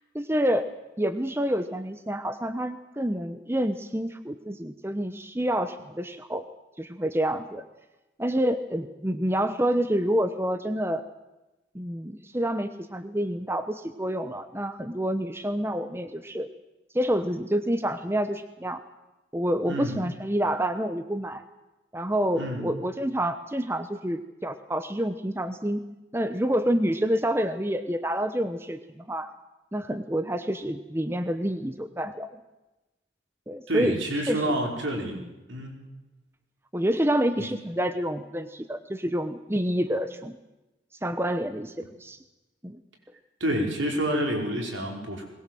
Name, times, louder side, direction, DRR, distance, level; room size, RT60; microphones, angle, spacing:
voice 1, 0.1-0.7 1.0-6.4 6.8-7.6 8.2-11.0 11.7-16.5 16.9-18.8 19.3-21.4 21.9-25.8 26.1-29.3 29.7-32.4 33.5-34.0 34.3-34.5 35.1-35.2 36.7-40.4 41.0-42.2 42.6-42.8, equal, 10° right, 9 dB, 0.9 m, -28 dB
voice 2, 19.7-20.0 22.4-22.7 33.7-35.2 35.5-35.8 37.4-37.5 43.4-45.3, equal, 75° right, 1 dB, 5.3 m, -28 dB
21.5 x 21.0 x 7.7 m, 1.0 s
head